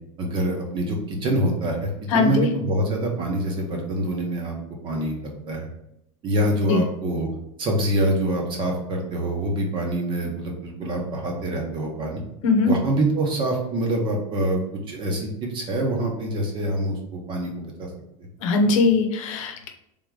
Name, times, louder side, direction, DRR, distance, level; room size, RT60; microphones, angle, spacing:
voice 1, 0.2-4.6 4.8-5.7 6.2-7.3 7.6-12.2 12.6-14.6 14.9-17.9, right 1 dB, 30° right, 1 dB, 1.0 m, -25 dB
voice 2, 2.1-2.5 6.7-6.8 12.4-12.7 18.4-19.7, left 4 dB, 75° left, 4 dB, 0.8 m, -20 dB
3.6 x 3.0 x 4.6 m, 0.80 s
supercardioid pair, 150°, 17 cm